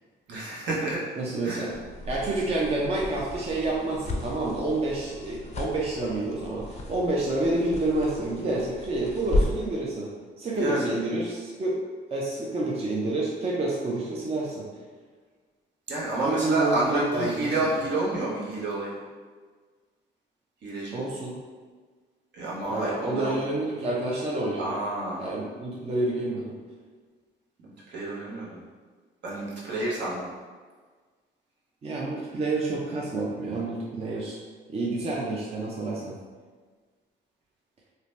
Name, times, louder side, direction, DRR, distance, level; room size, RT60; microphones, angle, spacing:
voice 1, 0.3-1.0 1.4-1.7 10.5-10.9 15.9-18.9 20.6-21.0 22.3-23.3 24.6-25.2 27.6-28.6 29.2-30.3, right 2 dB, 65° right, -5 dB, 0.9 m, -29 dB
voice 2, 1.2-1.8 2.1-11.8 12.1-14.7 16.2-17.8 20.9-21.4 22.7-24.7 25.2-26.6 31.8-34.4 34.7-36.2, right 2 dB, 30° right, -4 dB, 0.5 m, -29 dB
sound 1, 1.7-9.8, left 1 dB, 35° left, 0.4 m, -34 dB
2.6 x 2.1 x 3.1 m, 1.5 s
cardioid pair, 90°, 20 cm